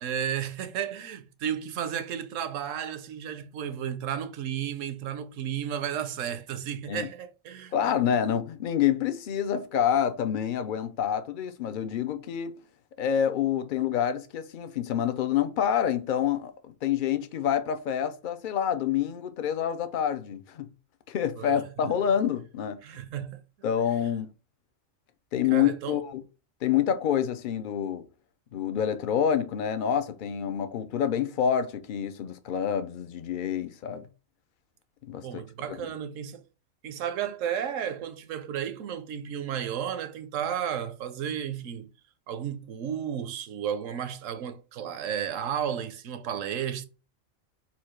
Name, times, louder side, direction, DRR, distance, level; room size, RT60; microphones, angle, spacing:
voice 1, 0.0-7.7 21.4-21.9 22.8-23.4 25.5-26.0 35.2-36.4 36.8-41.9 42.3-46.8, right 9 dB, 75° right, 1.0 m, -33 dB
voice 2, 7.7-12.5 13.0-16.5 16.8-20.7 21.1-22.8 23.6-24.3 25.3-26.2 26.6-28.0 28.5-34.1 35.1-35.3 35.7-35.8, left 9 dB, 60° left, 0.5 m, -27 dB
4.4 x 2.3 x 4.3 m
omnidirectional pair, 1.4 m